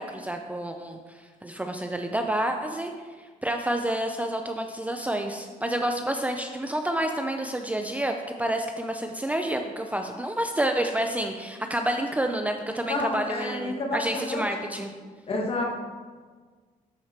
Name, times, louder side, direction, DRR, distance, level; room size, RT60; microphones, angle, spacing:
voice 1, 0.0-2.9 3.2-14.9, right 1 dB, 10° right, 4 dB, 0.5 m, -29 dB
voice 2, 12.9-14.4 15.3-15.6, left 2 dB, 40° left, 0 dB, 1.6 m, -29 dB
11.5 x 4.8 x 4.4 m, 1.5 s
cardioid pair, 120°, 14 cm